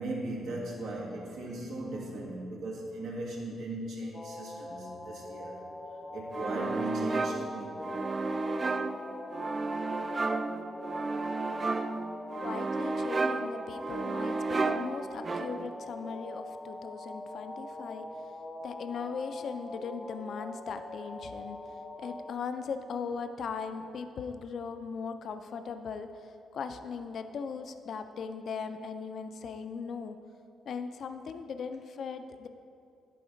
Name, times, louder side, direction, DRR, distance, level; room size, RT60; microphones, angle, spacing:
voice 1, 0.0-5.6 6.1-8.0, right 2 dB, 80° right, -3 dB, 1.7 m, -38 dB
sound 1, 4.1-22.3, left 2 dB, 20° left, 0.6 m, -43 dB
sound 2, 6.3-15.8, right 3 dB, 35° right, 0.3 m, -33 dB
voice 2, 12.4-18.1 18.6-30.2 30.7-32.5, left 5 dB, 60° left, 9 dB, 0.4 m, -39 dB
10.5 x 4.2 x 5.1 m, 2.5 s
cardioid pair, 90°, 0 cm